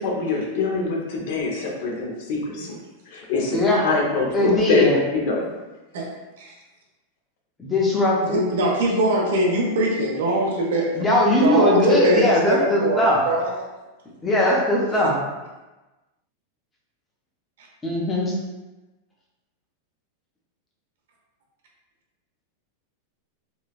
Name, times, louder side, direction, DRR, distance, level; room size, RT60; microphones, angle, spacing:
voice 1, 0.0-2.8 3.1-4.9 5.3-5.4, left 4 dB, 60° left, -1 dB, 0.6 m, -24 dB
voice 2, 3.5-3.8 4.3-5.0 7.6-8.4 10.9-13.2 14.2-15.2 17.8-18.3, left 1 dB, 10° left, -4 dB, 0.6 m, -19 dB
voice 3, 8.2-11.1 11.4-13.6, right 1 dB, 80° right, -2 dB, 0.7 m, -22 dB
3.1 x 2.1 x 2.4 m, 1.1 s
supercardioid pair, 150°, 0 cm